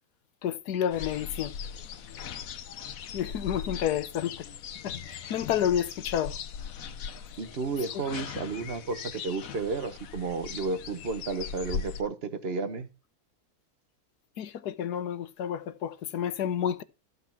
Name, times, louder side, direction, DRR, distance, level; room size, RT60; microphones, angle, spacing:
voice 1, 0.4-1.5 3.1-4.5 4.8-6.3 14.4-16.8, left 9 dB, 85° left, 1.5 m, -30 dB
sound 1, 0.9-12.0, left 7 dB, 65° left, 1.2 m, -39 dB
voice 2, 7.4-12.9, right 4 dB, 45° right, 1.2 m, -32 dB
14.5 x 4.8 x 5.8 m
omnidirectional pair, 1.7 m